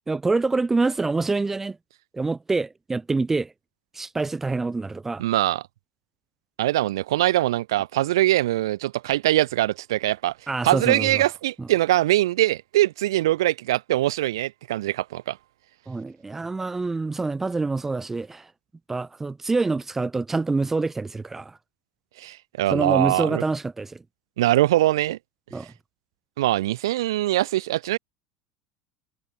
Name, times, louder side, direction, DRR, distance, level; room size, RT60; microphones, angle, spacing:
voice 1, 0.1-1.8 2.1-3.5 3.9-5.2 10.5-11.2 11.6-11.7 15.9-18.5 18.9-21.6 22.7-24.0 25.5-25.7, right 3 dB, 15° right, 0.9 m, -26 dB
voice 2, 5.2-5.6 6.6-10.3 10.6-15.4 22.2-23.4 24.4-25.2 26.4-28.0, right 15 dB, 85° right, 1.6 m, -22 dB
supercardioid pair, 105°, 2 cm